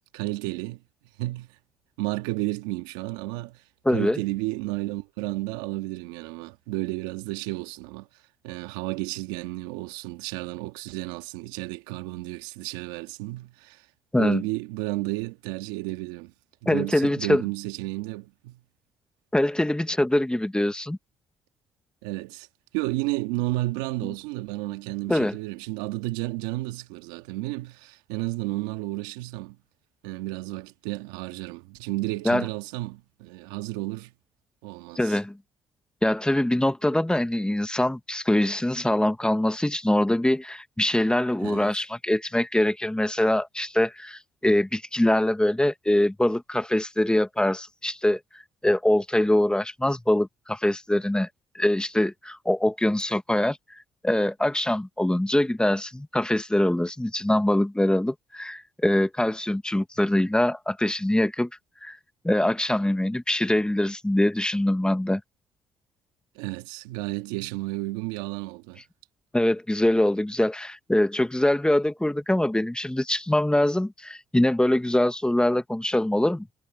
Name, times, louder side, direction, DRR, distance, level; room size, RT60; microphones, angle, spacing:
voice 1, 0.1-0.8 1.2-1.5 2.0-3.6 3.9-8.1 8.4-13.8 14.2-16.3 16.6-18.6 22.0-22.5 22.7-29.6 30.0-34.1 34.6-35.2 41.4-41.7 66.4-68.8, right 20 dB, 90° right, 2.0 m, -32 dB
voice 2, 3.9-4.2 14.1-14.4 16.7-17.4 19.3-21.0 25.1-25.4 32.3-32.5 35.0-35.4 36.0-51.3 51.5-53.8 54.0-61.5 61.8-62.0 62.2-65.2 69.3-76.5, left 1 dB, 10° left, 1.8 m, -23 dB
hypercardioid pair, 55°, 11 cm